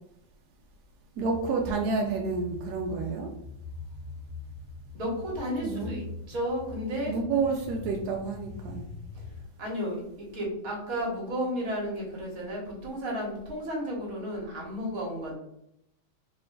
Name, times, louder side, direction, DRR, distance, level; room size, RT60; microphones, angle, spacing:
sound 1, 1.2-9.4, left 3 dB, 70° left, 1.0 m, -43 dB
voice 1, 1.2-3.3 5.6-5.9 7.1-8.9, right 4 dB, 75° right, 1 dB, 0.9 m, -29 dB
voice 2, 4.9-7.2 9.6-15.3, equal, 50° right, -2 dB, 1.6 m, -33 dB
4.1 x 2.7 x 3.1 m, 0.79 s
omnidirectional pair, 2.2 m